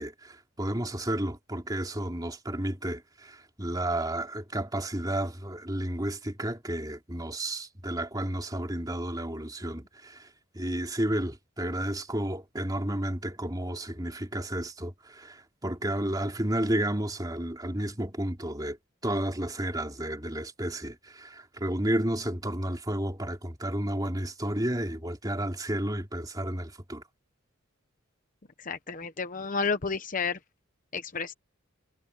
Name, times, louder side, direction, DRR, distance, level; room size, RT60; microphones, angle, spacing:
voice 1, 0.0-10.2 10.5-15.4 15.6-18.8 19.0-27.0, right 1 dB, 20° right, 3.4 m, -32 dB
voice 2, 28.7-30.4 30.9-31.3, left 5 dB, 40° left, 0.9 m, -31 dB
head